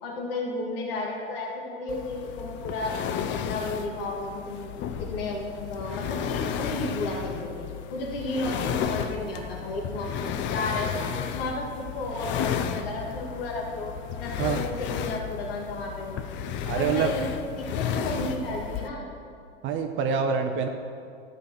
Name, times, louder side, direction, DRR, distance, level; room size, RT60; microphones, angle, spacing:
voice 1, 0.0-3.0 3.3-4.7 5.0-16.2 16.7-17.2 17.6-19.1, left 2 dB, 70° left, -2 dB, 2.2 m, -33 dB
sound 1, 1.9-18.9, left 8 dB, 40° left, 0.7 m, -33 dB
voice 2, 16.7-17.1 19.6-20.7, right 6 dB, 40° right, 4 dB, 0.8 m, -26 dB
13.0 x 5.2 x 6.5 m, 2.4 s
hypercardioid pair, 100°, 31 cm